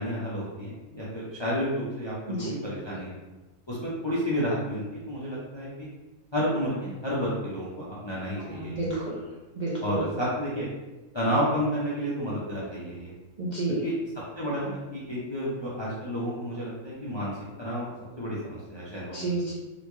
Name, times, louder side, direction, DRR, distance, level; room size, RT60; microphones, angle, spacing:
voice 1, 0.0-3.1 3.7-5.9 6.3-8.8 9.8-10.7 11.1-13.1 13.8-13.9 14.4-17.3 17.6-17.9 18.2-19.3, equal, 35° left, -7 dB, 0.4 m, -31 dB
voice 2, 8.3-9.2 9.6-10.1 13.4-13.8 19.1-19.5, right 2 dB, 55° right, -6 dB, 0.5 m, -30 dB
4.0 x 2.2 x 3.0 m, 1.1 s
omnidirectional pair, 1.4 m